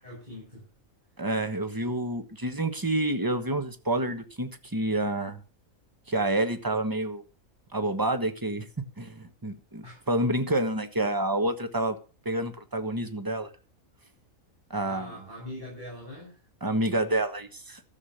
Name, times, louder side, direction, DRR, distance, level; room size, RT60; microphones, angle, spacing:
voice 1, 0.0-0.7 9.8-10.0 14.9-16.5, left 1 dB, 30° right, -3 dB, 7.2 m, -42 dB
voice 2, 1.2-5.4 6.1-7.2 7.7-12.0 12.2-13.5 14.7-15.1 16.6-17.8, right 1 dB, 15° right, 9 dB, 1.2 m, -28 dB
14.0 x 7.3 x 7.9 m, 0.37 s
omnidirectional pair, 1.4 m